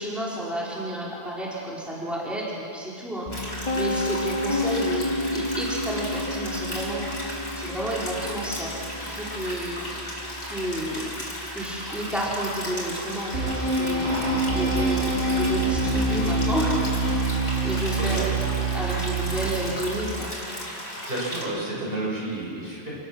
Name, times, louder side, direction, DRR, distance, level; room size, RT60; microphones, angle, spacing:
voice 1, 0.0-7.1 7.6-8.7 9.0-9.9 10.5-11.1 11.5-18.2 18.7-20.3, equal, ahead, -6 dB, 4.2 m, -31 dB
sound 1, 3.3-21.4, equal, 80° left, 4.4 m, -35 dB
Piano, 3.3-15.2, left 1 dB, 35° left, 1.9 m, -33 dB
sound 2, 13.3-19.9, right 2 dB, 80° right, 4.6 m, -25 dB
voice 2, 17.7-18.3 21.0-22.9, right 2 dB, 65° right, -5 dB, 6.6 m, -31 dB
28.5 x 16.0 x 6.4 m, 2.6 s
omnidirectional pair, 1.1 m